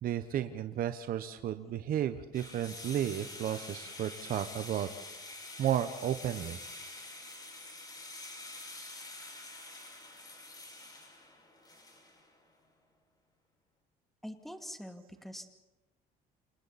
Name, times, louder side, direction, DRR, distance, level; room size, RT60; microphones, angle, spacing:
voice 1, 0.0-4.9 5.6-6.6, right 10 dB, 60° right, 9 dB, 1.0 m, -33 dB
sound 1, 2.3-12.3, left 2 dB, 25° left, 6.1 m, -47 dB
voice 2, 14.2-15.5, equal, ahead, 5 dB, 2.3 m, -44 dB
28.5 x 27.5 x 4.2 m, 1.0 s
cardioid pair, 110°, 17 cm